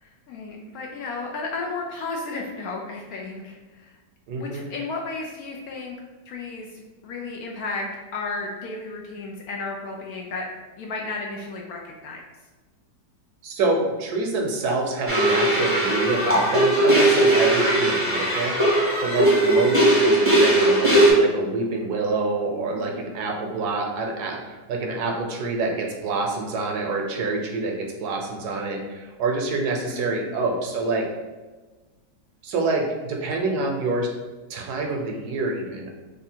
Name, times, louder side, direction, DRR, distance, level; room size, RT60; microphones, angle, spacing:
voice 1, 0.0-3.9 4.4-5.9 6.3-10.5 10.8-12.2 17.1-17.2 22.7-23.2 29.9-30.4, left 3 dB, 70° left, 0 dB, 0.9 m, -34 dB
voice 2, 4.3-4.6 13.4-31.1 32.4-34.1 34.5-35.9, right 3 dB, 75° right, 1 dB, 1.1 m, -27 dB
sound 1, 15.1-21.1, right 1 dB, 10° left, 0.8 m, -19 dB
3.3 x 2.4 x 4.4 m, 1.3 s
omnidirectional pair, 1.9 m